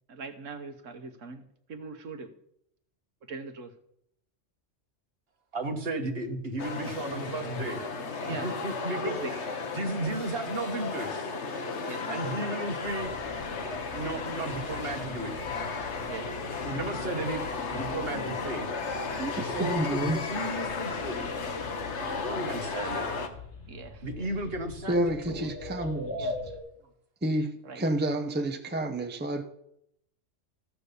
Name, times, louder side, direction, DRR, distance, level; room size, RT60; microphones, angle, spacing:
voice 1, 0.1-1.4 1.7-2.3 3.3-3.7 8.2-8.5 8.9-9.3 11.8-12.1 16.1-16.3 23.7-24.3 26.1-26.4 27.6-27.8, right 3 dB, 80° right, 7 dB, 1.4 m, -40 dB
voice 2, 5.5-7.8 8.3-9.2 9.8-11.3 12.1-13.1 13.9-15.4 16.7-18.8 19.4-21.3 22.2-23.1 24.0-25.5, right 2 dB, 50° right, 4 dB, 1.7 m, -34 dB
sound 1, 6.6-23.3, left 4 dB, 65° left, 1.5 m, -34 dB
sound 2, 12.8-26.6, left 3 dB, 20° left, 2.4 m, -43 dB
voice 3, 19.1-20.2 24.9-26.3 27.2-29.4, right 1 dB, 10° right, 6 dB, 0.7 m, -30 dB
14.5 x 5.9 x 6.9 m, 0.74 s
omnidirectional pair, 1.3 m